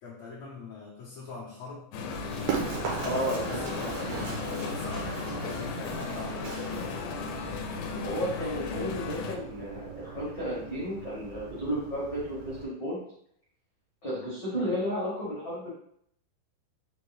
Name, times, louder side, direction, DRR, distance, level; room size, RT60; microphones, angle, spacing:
voice 1, 0.0-1.9 2.6-6.9 14.0-14.4, left 3 dB, 75° left, -7 dB, 1.6 m, -43 dB
sound 1, 1.9-9.4, left 6 dB, 90° left, 2.4 m, -35 dB
Run, 2.1-12.6, right 7 dB, 80° right, 2.3 m, -38 dB
voice 2, 3.0-4.2 7.9-13.0 14.0-15.7, equal, 55° left, -8 dB, 1.2 m, -33 dB
6.2 x 2.1 x 3.1 m, 0.69 s
omnidirectional pair, 4.1 m